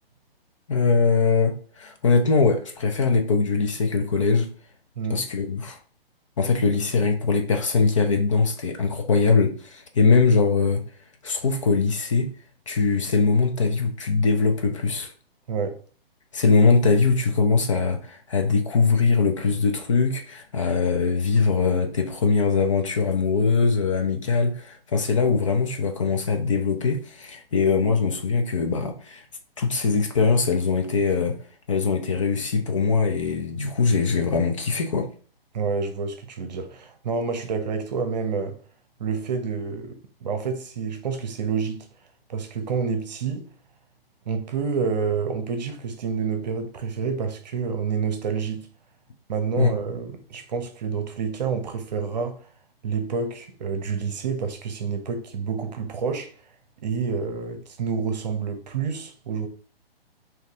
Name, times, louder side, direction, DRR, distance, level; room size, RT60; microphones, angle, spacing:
voice 1, 0.7-4.5 5.1-5.8 6.4-10.8 11.2-12.3 12.7-15.1 16.3-29.2 29.6-31.4 31.7-35.1 49.6-49.7, left 4 dB, 35° left, 0.5 m, -22 dB
voice 2, 35.5-38.6 39.0-41.9 42.3-43.5 44.2-48.7 49.3-52.4 52.8-56.3 56.8-59.5, right 5 dB, 45° right, 0.9 m, -28 dB
4.0 x 2.8 x 3.5 m
figure-of-eight pair, 135°, 30 cm